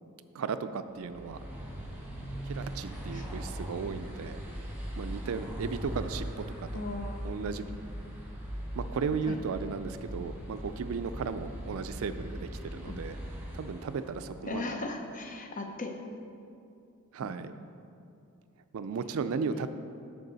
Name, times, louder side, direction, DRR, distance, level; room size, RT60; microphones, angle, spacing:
voice 1, 0.3-1.4 2.4-4.4 5.0-6.3 6.6-6.8 7.2-7.7 8.8-13.2 13.5-14.7 17.1-17.5 18.7-19.7, right 5 dB, 75° right, 11 dB, 0.4 m, -35 dB
sound 1, 0.9-14.4, equal, 10° right, 1.6 m, -40 dB
voice 2, 6.7-7.2 9.3-9.4 12.9-13.0 14.5-16.0 17.2-17.3 19.6-19.7, left 2 dB, 40° left, 4 dB, 0.7 m, -37 dB
13.0 x 4.6 x 4.0 m, 2.6 s
head